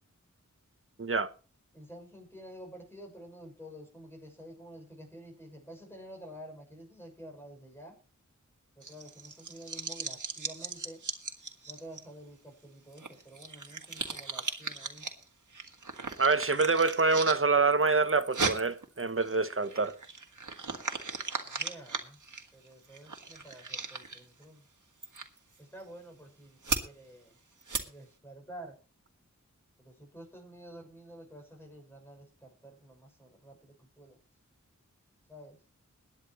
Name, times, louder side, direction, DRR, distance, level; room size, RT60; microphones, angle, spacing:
voice 1, 1.0-1.3 16.2-19.9, right 4 dB, 45° right, 1.0 m, -26 dB
voice 2, 1.7-7.9 8.7-11.0 11.7-15.0 21.4-22.2 22.5-24.7 25.6-27.4 27.8-28.8 29.8-34.2 35.3-35.6, right 1 dB, 5° left, 6.7 m, -49 dB
sound 1, 8.8-12.0 12.9-15.2 15.5-17.4 17.7-24.4 25.0-25.4 25.8-25.9 26.6-26.8 27.6-27.8, right 4 dB, 75° right, 1.7 m, -37 dB
21.5 x 9.8 x 3.1 m
wide cardioid pair, 45°, 31 cm